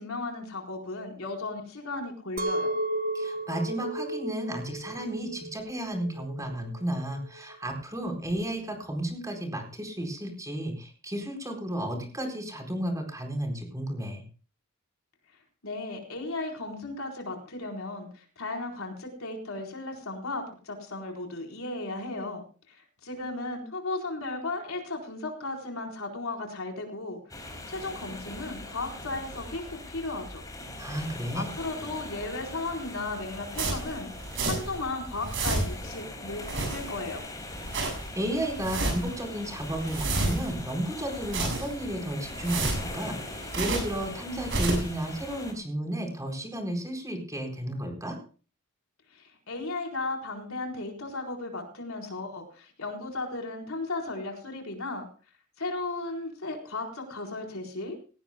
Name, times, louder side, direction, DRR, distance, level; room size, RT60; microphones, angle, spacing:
voice 1, 0.0-2.7 15.6-22.4 22.7-30.4 31.1-34.1 34.4-37.2 49.1-55.0 55.6-58.0, left 2 dB, 70° left, 1 dB, 4.2 m, -35 dB
Chink clink, 2.4-7.6, right 1 dB, 45° right, 1.0 m, -34 dB
voice 2, 3.1-14.2 30.8-31.5 37.8-48.2, right 1 dB, 15° right, 3 dB, 4.3 m, -33 dB
sound 1, 27.3-45.5, left 2 dB, 15° left, 4.1 m, -41 dB
sound 2, 33.5-34.8 35.1-35.9 36.3-37.1 37.5-38.1 38.5-39.2 39.6-40.6 41.1-41.9 42.3-44.0 44.3-45.0, right 2 dB, 60° right, 7.1 m, -31 dB
18.5 x 18.0 x 2.2 m, 0.37 s
head